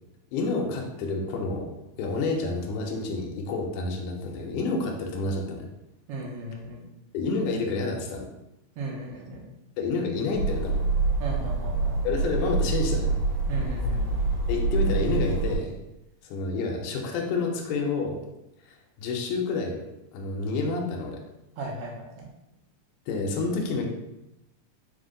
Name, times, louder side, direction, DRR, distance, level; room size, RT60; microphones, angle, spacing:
voice 1, 0.3-1.7 2.0-5.7 7.1-8.3 9.8-10.9 12.0-13.2 14.5-15.8 16.2-18.2 18.7-21.2 23.1-23.9, left 3 dB, 80° left, 0 dB, 1.9 m, -29 dB
voice 2, 6.1-6.8 8.7-9.4 11.2-12.0 13.5-14.2 21.6-22.3, right 1 dB, 80° right, -3 dB, 1.3 m, -36 dB
sound 1, 10.3-15.6, right 3 dB, 60° right, 2.3 m, -26 dB
5.0 x 2.1 x 3.7 m, 0.91 s
omnidirectional pair, 3.7 m